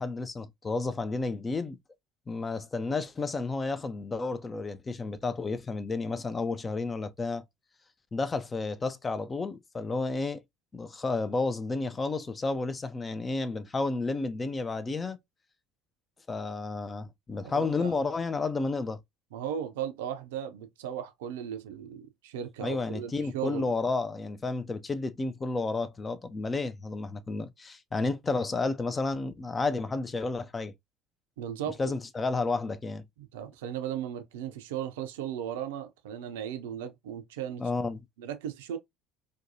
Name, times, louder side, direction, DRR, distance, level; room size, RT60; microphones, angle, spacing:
voice 1, 0.0-1.8 2.3-7.4 8.1-10.4 10.7-15.2 16.3-19.0 22.6-30.7 31.8-33.0 37.6-38.0, left 3 dB, 25° left, 0.4 m, -31 dB
voice 2, 17.5-17.9 19.3-23.7 31.4-31.9 33.2-37.6 38.2-38.8, right 9 dB, 70° right, 0.5 m, -36 dB
2.6 x 2.2 x 2.6 m
figure-of-eight pair, 60°, 0 cm